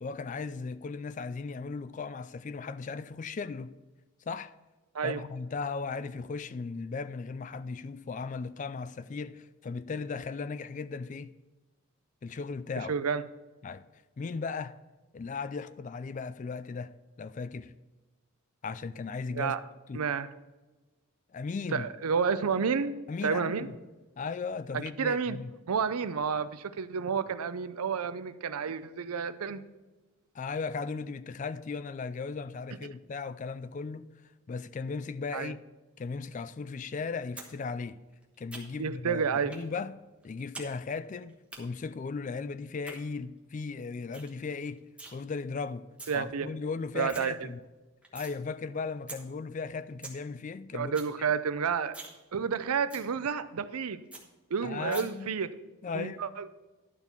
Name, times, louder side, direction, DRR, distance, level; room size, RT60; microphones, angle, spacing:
voice 1, 0.0-3.8 4.3-4.5 5.0-11.3 12.2-12.9 13.6-13.8 14.2-14.7 15.1-16.9 17.2-17.7 18.6-19.6 19.9-20.0 21.3-21.9 23.1-23.8 24.2-25.5 30.3-34.1 34.5-35.6 36.0-38.0 38.4-39.9 40.2-44.8 45.1-45.9 46.1-47.6 48.1-51.0 54.6-55.3 55.8-56.2, left 4 dB, 35° left, 0.3 m, -37 dB
voice 2, 12.9-13.2 19.3-19.6 19.9-20.3 21.7-22.9 23.2-23.7 24.7-25.4 25.7-29.6 35.3-35.5 38.8-39.5 46.1-46.5 46.9-47.3 50.7-52.0 52.3-54.0 54.5-55.5 55.9-56.5, right 6 dB, 85° right, 0.5 m, -30 dB
sound 1, 37.4-37.5 37.8-38.9 39.5-39.7 40.0-40.7 41.0-41.6 42.6-43.0 43.4-43.5 43.8-43.9 44.1-44.3 44.6-45.1 45.8-46.2 46.6-46.7 46.9-47.2 47.6-48.3 48.7-48.8 49.1-49.2 49.6-49.7 49.9-50.2 50.5-50.6 50.8-51.1 51.5-51.6 51.9-52.2 52.5-52.6 52.9-53.1 53.5-53.6 53.8-53.9 54.1-54.2 54.9-55.0, right 3 dB, 5° right, 1.2 m, -44 dB
12.0 x 4.5 x 6.8 m
head